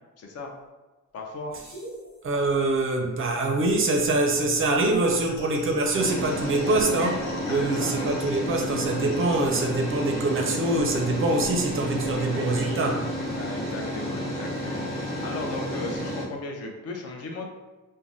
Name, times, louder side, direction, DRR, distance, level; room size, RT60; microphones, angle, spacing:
voice 1, 0.2-0.5 1.1-1.5 7.5-8.0 13.3-17.5, left 3 dB, 50° left, 1 dB, 0.5 m, -36 dB
sound 1, 1.6-2.1 3.7-3.8 5.9-16.2, equal, 30° left, 1.0 m, -31 dB
voice 2, 2.2-13.1, right 2 dB, 40° right, 2 dB, 0.4 m, -24 dB
sound 2, 3.9-9.9, left 2 dB, 85° left, 1.1 m, -49 dB
3.2 x 2.1 x 2.6 m, 1.2 s
cardioid pair, 135°, 32 cm